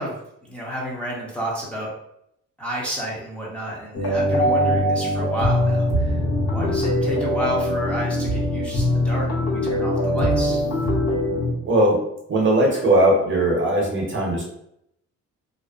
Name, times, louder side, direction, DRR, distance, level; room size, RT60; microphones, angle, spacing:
voice 1, 0.0-1.9 2.6-10.6, equal, 5° left, -5 dB, 0.7 m, -31 dB
sound 1, 3.9-11.5, left 1 dB, 55° left, 1.0 m, -22 dB
voice 2, 11.6-12.0 12.3-14.4, right 1 dB, 40° right, -2 dB, 0.8 m, -19 dB
2.5 x 2.1 x 2.4 m, 0.75 s
cardioid pair, 90°, 30 cm